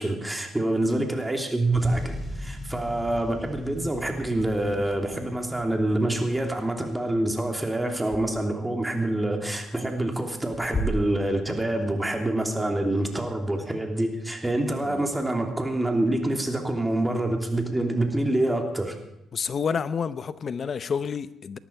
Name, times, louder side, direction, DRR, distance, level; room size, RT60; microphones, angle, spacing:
voice 1, 0.0-18.9, right 1 dB, 10° right, 3 dB, 3.0 m, -26 dB
sound 1, 1.7-9.2 9.9-10.0, left 1 dB, 10° left, 4.9 m, -41 dB
sound 2, 3.9-8.3 8.7-13.3, equal, 30° left, 5.1 m, -38 dB
voice 2, 19.3-21.6, left 6 dB, 50° left, 14 dB, 0.8 m, -29 dB
19.0 x 13.0 x 4.6 m, 0.89 s
cardioid pair, 90°, 0 cm